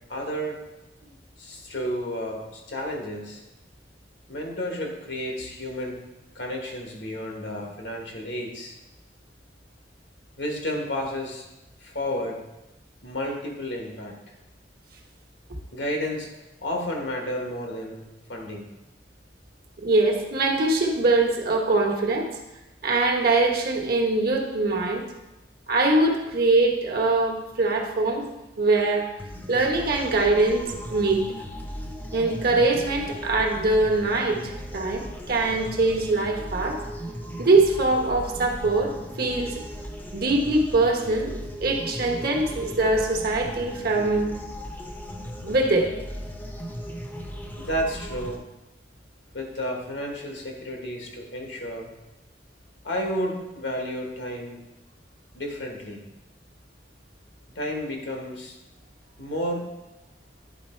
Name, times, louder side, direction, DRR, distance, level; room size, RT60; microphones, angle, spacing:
voice 1, 0.1-0.6 1.4-3.4 4.3-6.0 6.3-8.8 10.4-11.4 11.8-12.4 13.0-14.2 15.7-16.3 16.6-18.7 47.6-48.4 49.3-51.9 52.8-54.6 55.3-56.0 57.5-58.6 59.2-59.6, equal, 75° left, 1 dB, 1.5 m, -31 dB
voice 2, 19.8-22.3 22.8-25.0 25.7-28.3 28.6-29.1 29.5-31.2 32.1-34.4 34.7-36.8 37.4-38.9 39.2-39.6 40.1-41.3 41.6-44.4 45.4-45.9, right 2 dB, 55° right, 1 dB, 1.1 m, -22 dB
sound 1, 29.2-48.3, equal, 10° left, 0.7 m, -37 dB
10.0 x 4.0 x 4.4 m, 0.99 s
head